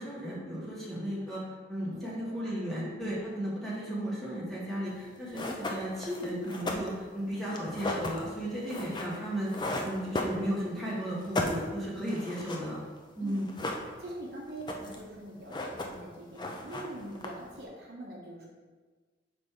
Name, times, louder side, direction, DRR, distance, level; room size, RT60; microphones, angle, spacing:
voice 1, 0.0-1.4 1.7-12.8 13.2-13.5, equal, ahead, -8 dB, 1.6 m, -35 dB
voice 2, 1.9-2.6 2.9-3.3 13.2-13.4 14.0-18.5, right 1 dB, 60° right, -2 dB, 0.9 m, -44 dB
sound 1, 5.0-5.1 5.3-10.8 11.1-12.7 13.0-13.1 13.3-14.2 14.5-15.1 15.4-16.1 16.4-17.6, left 2 dB, 25° left, 0.5 m, -36 dB
5.1 x 4.1 x 4.5 m, 1.4 s
head